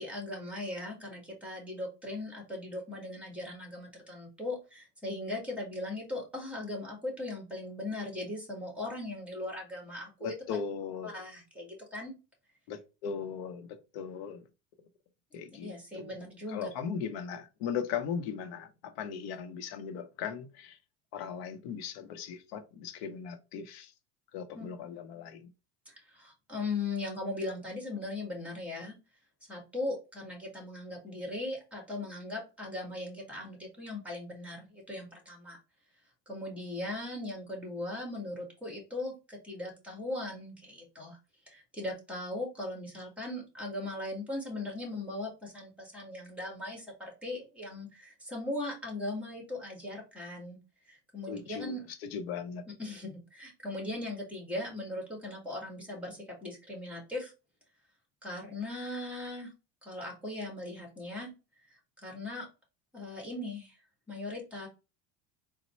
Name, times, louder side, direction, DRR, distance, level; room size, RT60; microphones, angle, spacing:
voice 1, 0.0-10.4 11.0-12.2 15.6-16.7 24.5-24.7 25.8-28.9 29.5-35.6 36.3-41.2 41.5-50.6 50.9-51.8 52.8-57.3 58.2-59.5 59.8-61.3 62.0-62.5 62.9-63.8 64.1-64.7, left 2 dB, 5° right, 1.7 m, -39 dB
voice 2, 10.2-11.2 12.7-14.4 15.3-16.1 16.5-20.8 21.1-23.9 24.3-25.5 51.3-51.8 52.0-52.7, left 7 dB, 85° left, 0.8 m, -38 dB
4.0 x 2.2 x 4.3 m
cardioid pair, 140°, 30 cm